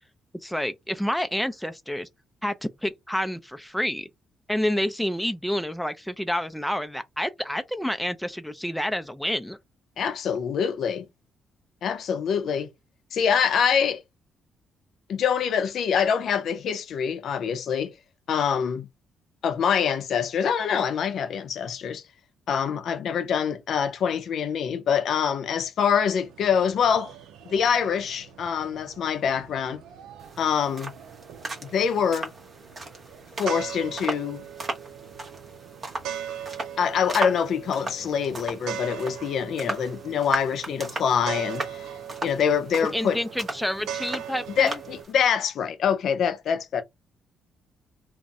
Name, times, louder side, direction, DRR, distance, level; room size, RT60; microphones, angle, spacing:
voice 1, 0.4-2.1 2.4-4.1 4.5-9.6 42.9-44.8, equal, ahead, 0.4 m, -28 dB
voice 2, 10.0-11.1 11.8-12.7 13.1-14.0 15.1-17.9 18.3-18.9 19.4-22.0 22.5-27.1 27.5-29.8 30.4-30.9 31.6-32.3 33.4-34.4 36.8-41.9 42.2-43.2 44.6-46.8, left 7 dB, 65° left, 0.5 m, -25 dB
sound 1, 26.1-45.0, right 9 dB, 85° right, 0.5 m, -40 dB
sound 2, 30.2-45.1, right 2 dB, 35° right, 0.9 m, -37 dB
2.5 x 2.1 x 3.5 m
cardioid pair, 90°, 0 cm